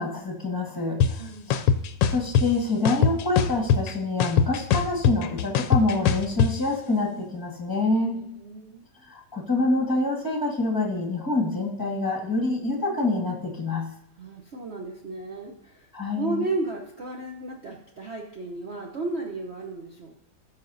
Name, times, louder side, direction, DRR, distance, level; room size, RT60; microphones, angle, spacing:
voice 1, 0.0-1.2 1.5-1.6 2.1-8.2 9.1-13.9 15.9-16.4, left 2 dB, 10° left, 0 dB, 1.4 m, -26 dB
sound 1, 1.0-1.1 1.5-2.5 2.9-3.9 4.2-6.5, left 7 dB, 75° left, 1.2 m, -21 dB
voice 2, 1.0-1.6 8.1-8.8 14.2-15.9 16.1-20.2, right 3 dB, 50° right, 0 dB, 0.8 m, -34 dB
18.0 x 6.2 x 2.7 m, 0.75 s
omnidirectional pair, 2.1 m